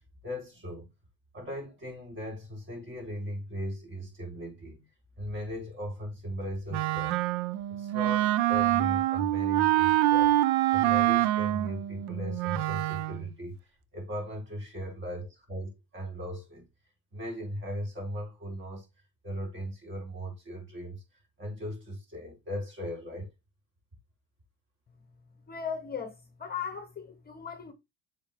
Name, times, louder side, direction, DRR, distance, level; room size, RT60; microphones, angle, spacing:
voice 1, 0.2-0.9 1.3-4.9 5.2-7.2 7.7-10.4 10.7-13.6 13.9-16.7 17.1-18.9 19.2-21.0 21.4-23.3, equal, 30° right, 3.9 m, -38 dB
Wind instrument woodwind instrument, 6.7-13.3, right 15 dB, 75° right, 0.6 m, -26 dB
voice 2, 25.5-27.7, left 6 dB, 25° left, 1.0 m, -37 dB
7.3 x 3.9 x 3.5 m
cardioid pair, 125°, 39 cm